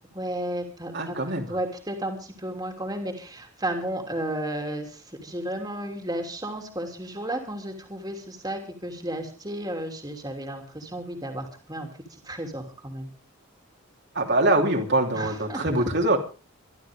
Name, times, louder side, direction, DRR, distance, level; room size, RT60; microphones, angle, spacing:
voice 1, 0.1-1.2 1.5-13.1 15.1-15.9, right 1 dB, 20° right, 4 dB, 3.1 m, -33 dB
voice 2, 0.9-1.4 14.1-16.2, right 2 dB, 50° right, 1 dB, 3.1 m, -23 dB
24.5 x 12.5 x 3.7 m, 0.36 s
head